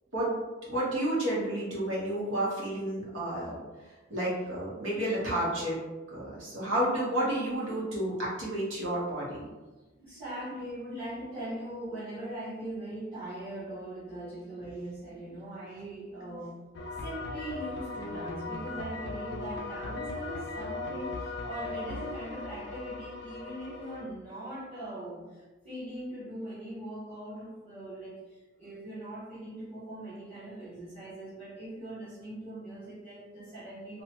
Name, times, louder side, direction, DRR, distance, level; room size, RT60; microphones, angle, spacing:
voice 1, 0.7-3.5 4.1-5.8 6.1-9.4, right 1 dB, 80° right, -6 dB, 1.0 m, -31 dB
voice 2, 10.0-16.6 17.0-34.0, right 1 dB, 30° right, -13 dB, 1.0 m, -41 dB
sound 1, 16.7-24.0, left 3 dB, 55° left, 0.3 m, -38 dB
2.8 x 2.2 x 2.9 m, 1.2 s
head